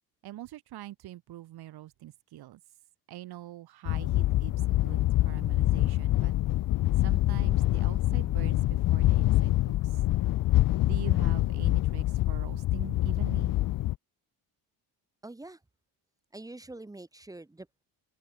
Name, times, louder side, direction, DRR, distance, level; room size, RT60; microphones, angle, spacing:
voice 1, 0.2-2.6 3.1-6.3 7.0-10.0 10.8-13.5, right 14 dB, 65° right, 4.5 m, -44 dB
sound 1, 3.9-14.0, left 16 dB, 55° left, 0.7 m, -25 dB
voice 2, 15.2-15.6 16.3-17.8, right 2 dB, 10° right, 2.0 m, -45 dB
open air
cardioid pair, 175°, 40 cm